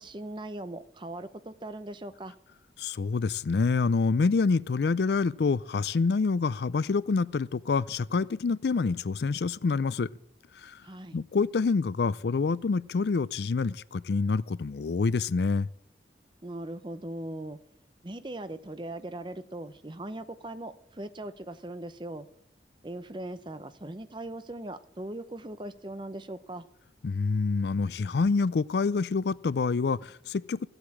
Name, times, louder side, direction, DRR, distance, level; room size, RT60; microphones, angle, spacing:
voice 1, 0.0-2.3 10.8-11.2 16.4-17.6 18.0-22.3 22.8-26.6, right 1 dB, 25° right, 0.8 m, -39 dB
voice 2, 2.8-10.1 10.6-10.8 11.1-15.7 27.0-30.7, left 4 dB, 70° left, 0.4 m, -27 dB
15.0 x 8.0 x 8.5 m
head